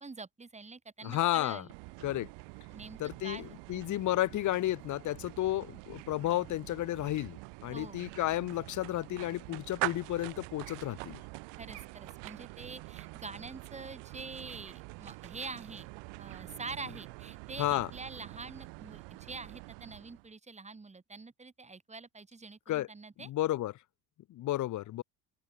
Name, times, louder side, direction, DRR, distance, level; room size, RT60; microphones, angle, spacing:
voice 1, 0.0-1.7 2.7-4.0 7.7-8.1 11.6-15.9 16.2-23.3, right 3 dB, 15° right, 4.7 m, -46 dB
voice 2, 1.0-1.6 2.0-2.3 3.0-11.2 17.6-17.9 22.7-22.9 23.2-23.7 24.3-25.0, left 14 dB, 45° left, 0.8 m, -32 dB
sound 1, 1.7-20.3, right 29 dB, 85° right, 2.2 m, -45 dB
open air
cardioid pair, 125°, 43 cm